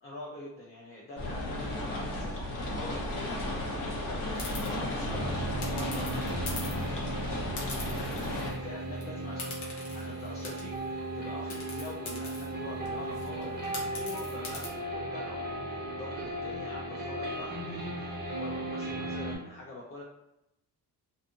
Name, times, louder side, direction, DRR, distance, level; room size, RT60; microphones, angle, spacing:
voice 1, 0.0-6.4 6.7-6.9 7.7-20.0, left 2 dB, 35° left, -3 dB, 0.5 m, -45 dB
sound 1, 1.2-8.5, left 1 dB, 55° left, 0.9 m, -34 dB
sound 2, 4.3-4.7 5.6-6.9 7.6-8.6 8.9-9.0 9.4-10.9 11.5-14.7, left 3 dB, 80° left, 0.9 m, -42 dB
sound 3, 5.1-19.4, right 1 dB, 25° right, 0.7 m, -36 dB
2.5 x 2.4 x 2.6 m, 0.88 s
cardioid pair, 110°, 39 cm